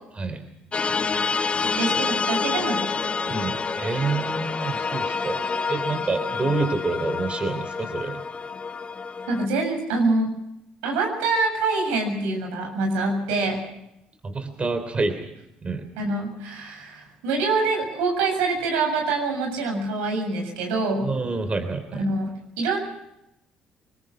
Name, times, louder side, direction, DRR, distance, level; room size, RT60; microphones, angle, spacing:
voice 1, 0.2-0.5 3.3-8.2 14.2-15.3 15.6-15.9 21.0-22.1, right 3 dB, 35° right, 8 dB, 3.5 m, -28 dB
sound 1, 0.7-9.4, left 4 dB, 35° left, 1.4 m, -27 dB
voice 2, 1.6-2.8 3.3-3.4 9.3-10.3 10.8-13.6 16.0-21.0 22.0-22.8, right 3 dB, 85° right, 2 dB, 7.4 m, -25 dB
24.5 x 21.0 x 6.2 m, 0.86 s
hypercardioid pair, 60°, 4 cm